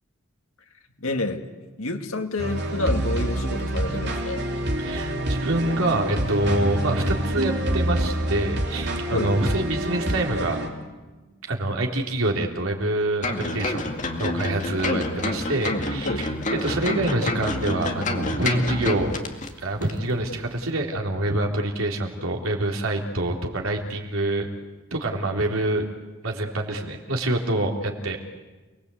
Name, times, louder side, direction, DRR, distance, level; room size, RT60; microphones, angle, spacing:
voice 1, 1.0-1.4 1.8-4.4 9.1-9.3 16.0-16.3, left 2 dB, 85° left, 5 dB, 2.4 m, -28 dB
sound 1, 2.4-10.7, right 1 dB, 55° right, 3.3 m, -27 dB
voice 2, 4.8-10.6 11.4-19.2 19.6-24.5 24.9-25.9 26.2-28.2, right 1 dB, 80° right, 1 dB, 3.6 m, -26 dB
sound 2, 13.2-19.5 19.8-19.9, left 2 dB, 35° left, 2.2 m, -28 dB
29.0 x 20.5 x 8.4 m, 1.2 s
head